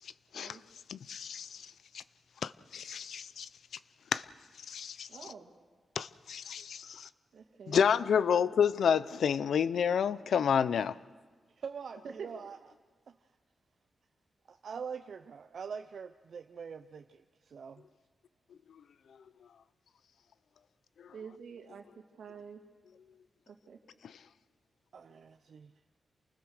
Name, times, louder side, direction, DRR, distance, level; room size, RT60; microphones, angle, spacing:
voice 1, 0.9-2.0 2.4-3.5 4.1-4.3 4.7-5.1 6.0-7.1 7.7-10.9, left 7 dB, 80° left, 0.6 m, -29 dB
voice 2, 5.1-5.5 7.3-7.8 12.0-12.3 21.1-21.8 22.1-22.6 23.5-23.8, right 6 dB, 80° right, 2.4 m, -47 dB
voice 3, 11.6-12.6 13.1-13.2 14.5-17.8 24.9-25.7, right 6 dB, 60° right, 0.6 m, -44 dB
28.0 x 20.0 x 6.5 m
wide cardioid pair, 140°, 0 cm